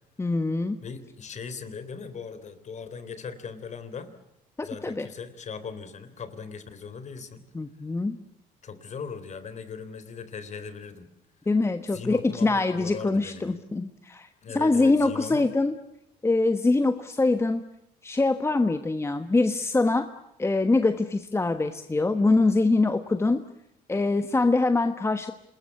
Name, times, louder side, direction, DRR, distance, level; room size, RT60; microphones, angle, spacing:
voice 1, 0.2-0.8 4.6-5.1 7.5-8.2 11.5-14.3 14.5-15.7 16.2-17.6 18.0-20.1 20.4-23.4 23.9-25.3, left 3 dB, 15° left, 9 dB, 1.3 m, -24 dB
voice 2, 0.8-4.1 4.6-7.4 8.6-11.1 11.9-13.6 14.4-15.5, left 5 dB, 45° left, 13 dB, 3.5 m, -39 dB
27.0 x 21.0 x 8.3 m, 0.82 s
cardioid pair, 110°, 17 cm